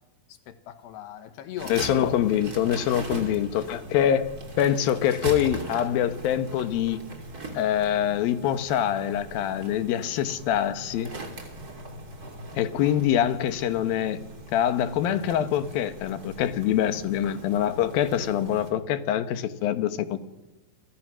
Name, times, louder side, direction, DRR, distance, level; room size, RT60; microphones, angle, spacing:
voice 1, 0.5-1.7 3.3-3.8 17.3-17.4, left 11 dB, 90° left, 3.6 m, -41 dB
sound 1, 1.6-18.7, right 1 dB, 25° right, 3.0 m, -40 dB
voice 2, 1.7-4.3 4.6-7.0 7.5-11.1 12.6-14.2 14.5-20.2, left 10 dB, 70° left, 2.8 m, -25 dB
29.5 x 25.0 x 6.2 m
omnidirectional pair, 4.6 m